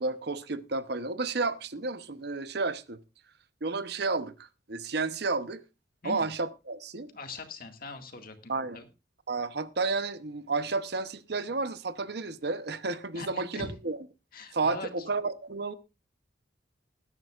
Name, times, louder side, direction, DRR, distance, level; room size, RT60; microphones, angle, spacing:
voice 1, 0.0-3.0 3.6-5.6 6.0-7.1 8.5-8.8 9.3-14.0 14.5-15.7, right 3 dB, 60° right, 0.9 m, -31 dB
voice 2, 7.1-8.9 13.1-13.7 14.3-14.9, left 3 dB, 50° left, 2.1 m, -41 dB
20.0 x 11.0 x 2.5 m
head